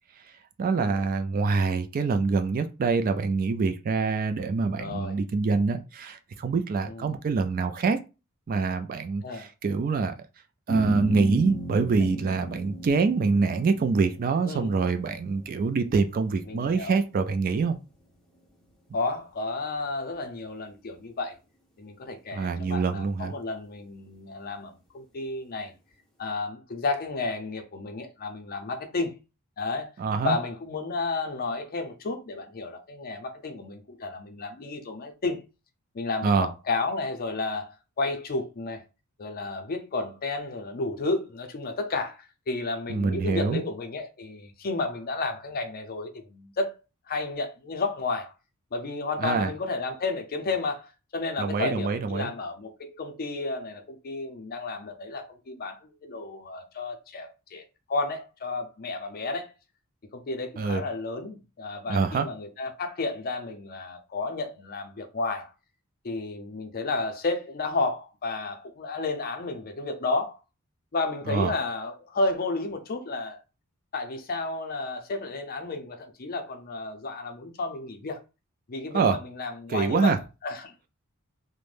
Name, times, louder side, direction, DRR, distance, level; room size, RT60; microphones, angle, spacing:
voice 1, 0.6-8.0 8.5-10.1 10.7-17.8 22.3-23.3 30.0-30.4 36.2-36.5 42.9-43.6 49.2-49.5 51.4-52.3 60.6-60.8 61.9-62.3 71.3-71.5 78.9-79.2 79.7-80.2, right 4 dB, 40° right, 0.3 m, -25 dB
voice 2, 4.8-5.2 6.9-7.2 9.2-9.5 14.4-14.7 16.5-17.0 18.9-21.4 21.8-25.7 26.2-29.1 29.6-29.9 30.2-35.4 35.9-38.8 39.2-46.8 47.1-48.3 48.7-59.5 60.1-65.5 66.0-70.4 70.9-73.4 73.9-78.2 78.7-80.2 80.4-80.7, left 3 dB, 45° left, 0.5 m, -32 dB
sound 1, 10.7-17.2, right 1 dB, 5° left, 0.7 m, -35 dB
2.5 x 2.1 x 3.2 m
head